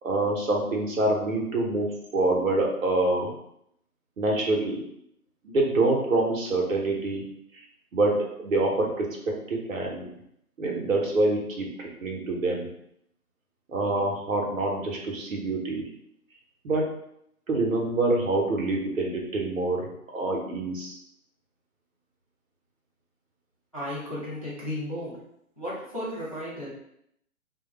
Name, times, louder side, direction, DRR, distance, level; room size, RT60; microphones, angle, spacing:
voice 1, 0.0-3.3 4.2-4.8 5.4-7.2 7.5-7.6 7.9-10.1 10.6-12.7 13.7-15.8 16.6-16.9 17.5-19.9 20.1-21.0, right 2 dB, 60° right, 0 dB, 0.8 m, -26 dB
voice 2, 23.7-25.2 25.6-26.7, left 1 dB, 25° left, -8 dB, 0.5 m, -34 dB
2.4 x 2.2 x 3.0 m, 0.74 s
hypercardioid pair, 160°, 45 cm